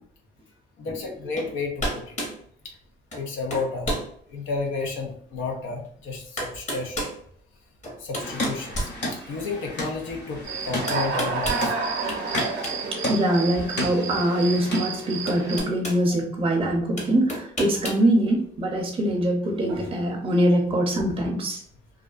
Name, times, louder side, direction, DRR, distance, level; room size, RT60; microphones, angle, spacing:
voice 1, 0.8-2.2 2.6-2.7 3.1-4.0 4.3-7.0 8.0-11.7, left 4 dB, 80° left, 1 dB, 0.6 m, -32 dB
sound 1, 1.4-1.5 1.8-2.4 3.1-3.2 3.5-4.1 4.7-4.8 5.8-5.9 6.4-7.2 7.8-9.5 10.9-11.6 12.1-12.8 13.1-13.2 14.6-14.7 15.3-16.0 17.0-18.0, equal, 35° left, 1.0 m, -31 dB
sound 2, 8.2-15.6, left 1 dB, 60° left, 1.3 m, -34 dB
Human voice / Cricket, 10.4-15.6, right 4 dB, 70° right, 0.6 m, -30 dB
voice 2, 12.9-21.6, right 1 dB, 30° right, 0 dB, 0.5 m, -23 dB
2.4 x 2.3 x 2.3 m, 0.62 s
cardioid pair, 90°, 20 cm